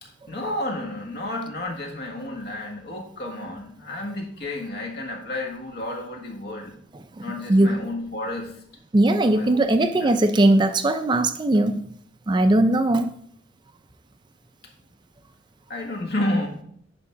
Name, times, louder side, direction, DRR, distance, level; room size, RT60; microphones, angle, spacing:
voice 1, 0.0-6.7 7.2-8.6 9.2-10.1 15.7-16.6, left 1 dB, 55° left, 1 dB, 1.5 m, -31 dB
voice 2, 8.9-11.8 12.3-13.1, right 1 dB, 25° right, 9 dB, 0.4 m, -19 dB
9.3 x 3.6 x 5.6 m, 0.65 s
head